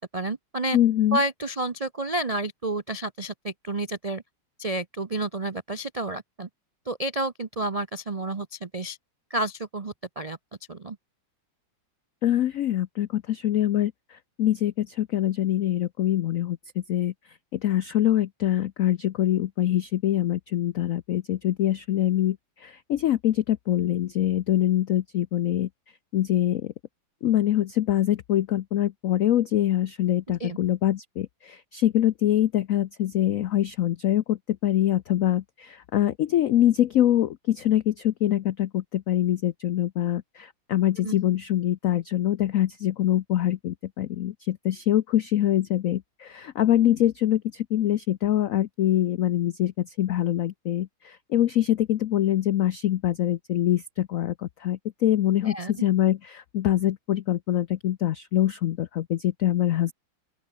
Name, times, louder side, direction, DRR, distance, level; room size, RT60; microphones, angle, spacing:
voice 1, 0.1-0.8 1.1-4.2 4.6-6.5 6.9-9.0 9.3-10.4 10.7-11.0 30.4-30.6 41.0-41.1 55.4-55.7, right 2 dB, 75° right, 0.3 m, -30 dB
voice 2, 0.7-1.2 12.2-25.7 26.1-26.7 27.2-59.9, left 12 dB, 85° left, 0.7 m, -24 dB
open air
omnidirectional pair, 2.2 m